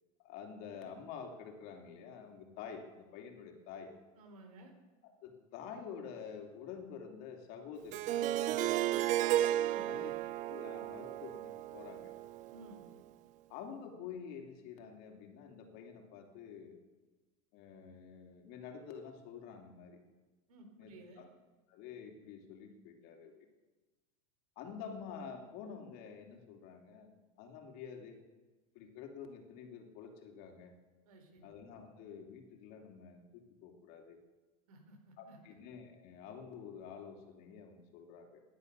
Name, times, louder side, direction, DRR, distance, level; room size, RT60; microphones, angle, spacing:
voice 1, 0.2-3.9 5.0-9.4 9.9-10.1 10.5-12.1 13.5-16.8 17.5-20.0 20.8-21.3 21.7-23.3 24.6-27.1 27.4-28.2 28.7-30.7 31.4-34.2 35.2-38.4, left 6 dB, 55° left, 3 dB, 2.9 m, -48 dB
voice 2, 4.2-4.7 9.7-10.1 12.5-12.9 20.5-21.2 31.1-31.5 34.7-35.4, right 2 dB, 80° right, 5 dB, 3.9 m, -55 dB
Harp, 7.9-12.9, right 13 dB, 40° right, 0.6 m, -34 dB
16.0 x 11.0 x 6.7 m, 1.2 s
supercardioid pair, 130°, 19 cm